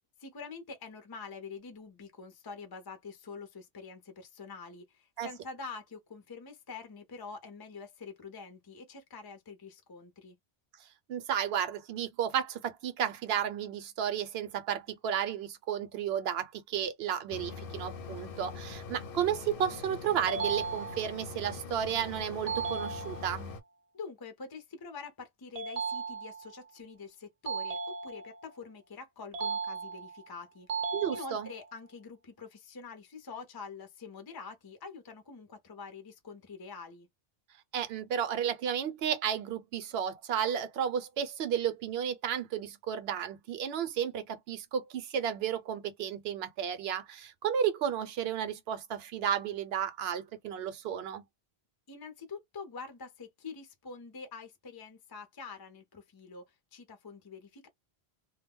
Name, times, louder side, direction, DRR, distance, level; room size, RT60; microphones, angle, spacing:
voice 1, 0.2-10.4 23.9-30.7 31.1-37.1 51.9-57.7, left 4 dB, 30° left, 0.5 m, -46 dB
voice 2, 11.1-23.5 30.9-31.5 37.7-51.2, right 9 dB, 75° right, 0.9 m, -33 dB
Mechanisms, 17.3-23.6, left 5 dB, 65° left, 0.7 m, -43 dB
sound 1, 20.3-21.3 22.5-23.5 25.6-26.6 27.5-28.5 29.3-30.2 30.7-31.7, right 5 dB, 45° right, 0.6 m, -36 dB
2.2 x 2.1 x 3.4 m
omnidirectional pair, 1.1 m